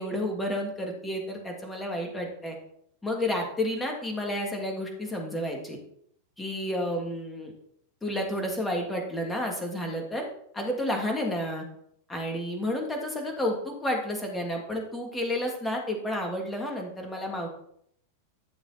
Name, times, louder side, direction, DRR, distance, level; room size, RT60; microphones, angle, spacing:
voice 1, 0.0-2.5 3.0-5.8 6.4-7.5 8.0-10.3 10.5-11.7 12.1-17.5, left 1 dB, 10° left, 1 dB, 3.0 m, -31 dB
12.5 x 7.0 x 4.5 m, 0.69 s
figure-of-eight pair, 90°, 0 cm